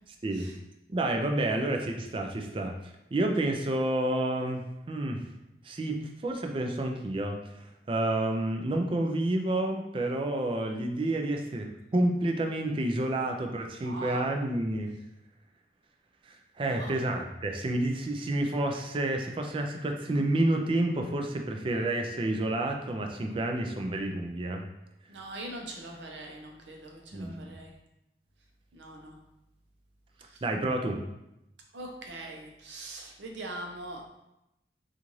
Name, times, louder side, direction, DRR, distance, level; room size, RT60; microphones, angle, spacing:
voice 1, 0.9-2.7 3.1-5.2 5.6-7.5 7.9-14.9 16.3-24.7 27.1-27.6 30.4-31.1, right 1 dB, 30° right, 3 dB, 0.3 m, -29 dB
voice 2, 13.8-14.3 16.7-17.0 25.1-27.7 28.7-29.1 30.3-30.4 31.7-34.1, right 1 dB, 85° right, 1 dB, 0.7 m, -42 dB
3.9 x 2.5 x 3.0 m, 0.88 s
head